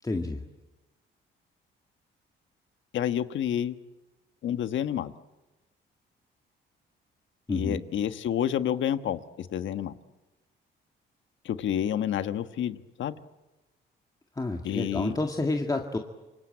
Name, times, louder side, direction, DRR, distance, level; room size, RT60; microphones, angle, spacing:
voice 1, 0.0-0.4 7.5-7.8 14.4-16.0, left 2 dB, 20° left, 2 dB, 2.0 m, -29 dB
voice 2, 2.9-3.8 4.4-5.1 7.5-10.0 11.4-13.2 14.6-15.1, left 10 dB, 70° left, 10 dB, 1.4 m, -29 dB
26.5 x 24.0 x 8.7 m, 1.1 s
cardioid pair, 90°, 20 cm